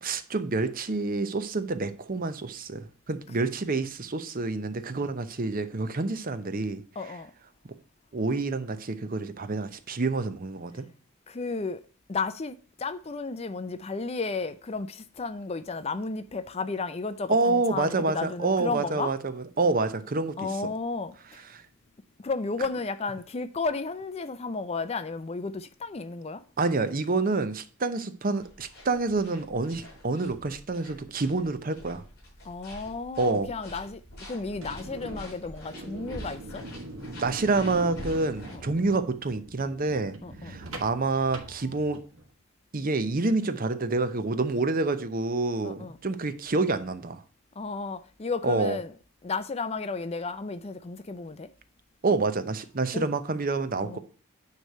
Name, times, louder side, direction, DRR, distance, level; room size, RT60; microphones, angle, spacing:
voice 1, 0.0-6.8 8.1-10.9 17.3-20.5 26.6-32.0 33.2-33.5 37.2-40.2 40.4-42.0 42.7-47.2 48.4-48.8 52.0-54.0, right 3 dB, 40° right, 0.7 m, -28 dB
voice 2, 7.0-7.3 11.3-11.8 12.1-19.1 20.4-21.4 22.2-26.4 32.4-34.0 34.3-36.6 38.5-38.6 40.2-40.5 45.6-46.0 47.6-48.9 49.2-51.5 52.9-53.1 53.8-54.0, left 4 dB, 30° left, 0.5 m, -33 dB
sound 1, 28.4-38.6, equal, 50° left, 4.6 m, -46 dB
sound 2, 34.4-42.2, right 1 dB, 70° right, 1.6 m, -42 dB
9.4 x 3.2 x 6.5 m
head